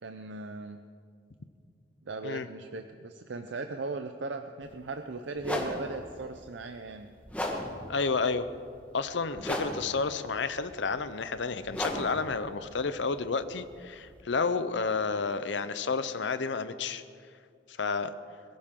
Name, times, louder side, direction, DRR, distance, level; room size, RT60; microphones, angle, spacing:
voice 1, 0.0-0.8 2.1-7.1, right 3 dB, 75° right, 7 dB, 0.6 m, -38 dB
sound 1, 4.6-4.8 5.4-14.2, left 1 dB, 5° left, 1.4 m, -38 dB
voice 2, 7.9-8.5 8.9-17.0 17.8-18.1, left 4 dB, 75° left, 12 dB, 0.7 m, -31 dB
22.0 x 15.0 x 3.8 m, 2.3 s
head